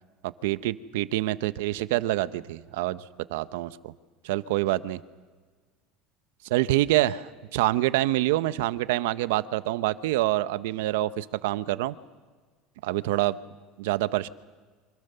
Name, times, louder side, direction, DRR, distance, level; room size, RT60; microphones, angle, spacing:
voice 1, 0.4-3.0 3.3-3.9 4.2-5.0 6.5-12.0 12.8-13.4 13.8-14.3, right 16 dB, 90° right, 14 dB, 0.8 m, -26 dB
26.0 x 25.5 x 6.8 m, 1.5 s
supercardioid pair, 130°, 0 cm